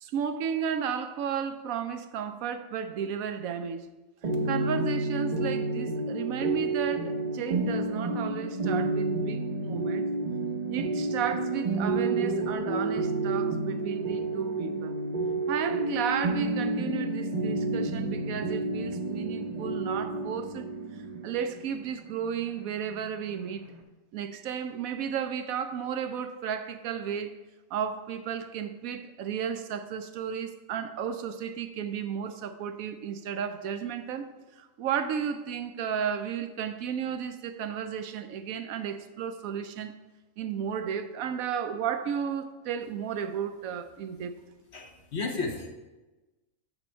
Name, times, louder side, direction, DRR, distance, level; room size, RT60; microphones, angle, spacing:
voice 1, 0.0-3.8 4.5-10.0 10.7-14.9 15.5-20.6 21.2-23.7 24.1-27.3 27.7-34.3 34.6-39.9 40.4-44.4, right 7 dB, 75° right, 1.0 m, -33 dB
sound 1, 4.2-23.8, right 3 dB, 40° right, 0.7 m, -30 dB
voice 2, 44.7-45.7, left 4 dB, 50° left, 1.1 m, -33 dB
8.0 x 6.1 x 4.4 m
omnidirectional pair, 1.5 m